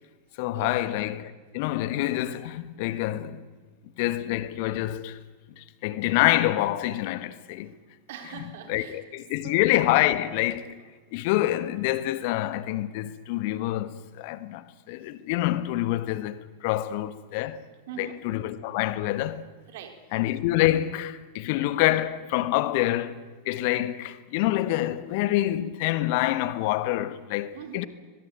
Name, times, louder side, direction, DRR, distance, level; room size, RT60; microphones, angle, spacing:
voice 1, 0.4-3.5 4.0-5.2 5.6-7.7 8.7-10.8 11.1-17.6 18.0-19.4 20.1-27.9, left 15 dB, 45° left, 1.5 m, -26 dB
voice 2, 3.6-4.0 7.6-9.0 9.4-9.6 17.9-18.2 19.7-20.1 27.5-27.9, right 7 dB, 55° right, 3.8 m, -43 dB
22.5 x 22.0 x 9.3 m
figure-of-eight pair, 90°, 0 cm